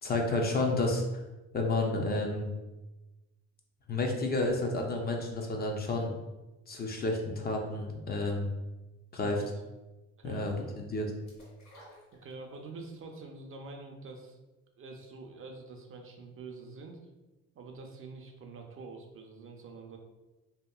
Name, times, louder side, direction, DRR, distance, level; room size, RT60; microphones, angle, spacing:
voice 1, 0.0-1.0 1.5-2.5 3.9-6.1 6.7-8.5 9.1-9.4 10.2-11.1, left 2 dB, 30° left, 1 dB, 0.5 m, -30 dB
voice 2, 9.1-9.5 10.2-10.5 12.1-14.4 14.8-17.0 17.5-20.0, right 3 dB, 45° right, 3 dB, 0.5 m, -46 dB
sound 1, 11.3-12.8 13.2-13.3, equal, 60° left, 1.3 m, -55 dB
2.8 x 2.4 x 2.3 m, 1.1 s
cardioid pair, 90°, 30 cm